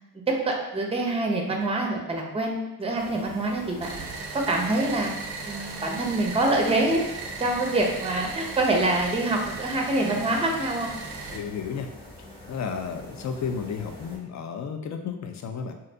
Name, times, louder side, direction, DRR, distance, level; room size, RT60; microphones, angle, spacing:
voice 1, 0.3-3.9 4.3-7.0 7.4-10.9, right 2 dB, 15° right, 1 dB, 0.5 m, -25 dB
sound 1, 2.9-14.2, left 1 dB, 10° left, 1.0 m, -44 dB
sound 2, 3.8-11.4, right 4 dB, 65° right, 0.5 m, -37 dB
voice 2, 11.3-11.9 12.5-15.7, left 6 dB, 45° left, 6 dB, 0.4 m, -32 dB
2.6 x 2.0 x 2.6 m, 0.95 s
supercardioid pair, 40°, 42 cm